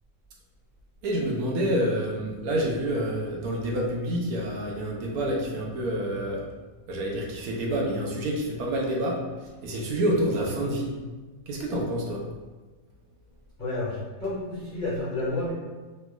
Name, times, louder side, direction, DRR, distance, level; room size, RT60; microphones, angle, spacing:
voice 1, 1.0-6.4 6.9-9.2 9.6-10.9 11.5-12.2, equal, 80° right, -1 dB, 1.1 m, -28 dB
voice 2, 13.6-15.5, left 2 dB, 45° left, -9 dB, 0.6 m, -30 dB
3.2 x 2.9 x 2.3 m, 1.3 s
omnidirectional pair, 1.6 m